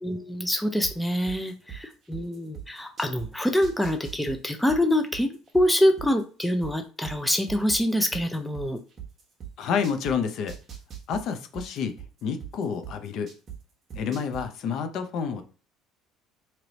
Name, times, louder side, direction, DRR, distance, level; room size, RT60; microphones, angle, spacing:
voice 1, 0.0-8.8 14.1-14.2, left 1 dB, 5° left, 5 dB, 0.4 m, -25 dB
sound 1, 0.8-3.3 3.6-6.7 7.0-10.1 10.5-13.6 13.9-14.4, right 10 dB, 35° right, 1.0 m, -40 dB
voice 2, 9.6-10.6 11.1-12.0 12.2-13.3 13.9-15.4, left 6 dB, 55° left, 8 dB, 0.6 m, -29 dB
3.1 x 2.9 x 3.9 m, 0.37 s
cardioid pair, 140°, 0 cm